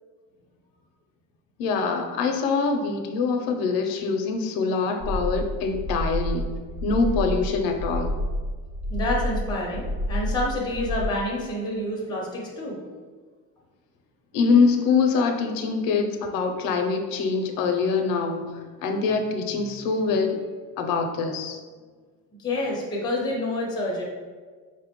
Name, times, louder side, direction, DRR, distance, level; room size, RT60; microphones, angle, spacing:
voice 1, 1.6-6.5 6.8-8.1 14.3-20.4 20.8-21.6, left 4 dB, 85° left, 5 dB, 0.5 m, -24 dB
sound 1, 5.0-11.1, equal, 40° right, 0.5 m, -29 dB
voice 2, 8.9-12.8 22.4-24.0, left 1 dB, 15° left, -3 dB, 0.5 m, -28 dB
4.6 x 2.1 x 2.8 m, 1.5 s
cardioid pair, 175°, 34 cm